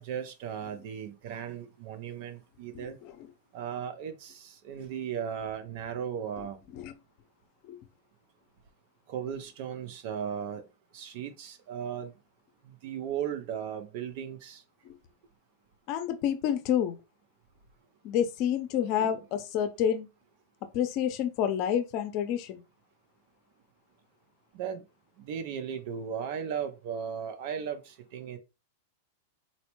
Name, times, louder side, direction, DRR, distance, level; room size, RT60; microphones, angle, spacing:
voice 1, 0.0-3.0 3.5-6.6 9.1-10.6 10.9-12.1 12.6-14.6 19.0-19.1 24.5-24.8 25.2-28.4, right 8 dB, 55° right, 0.6 m, -36 dB
voice 2, 2.7-3.2 6.7-6.9 7.7-7.8 14.8-15.0 15.9-17.0 18.0-20.1 20.7-22.6, left 9 dB, 50° left, 0.6 m, -29 dB
4.0 x 2.0 x 3.0 m
hypercardioid pair, 120°, 0 cm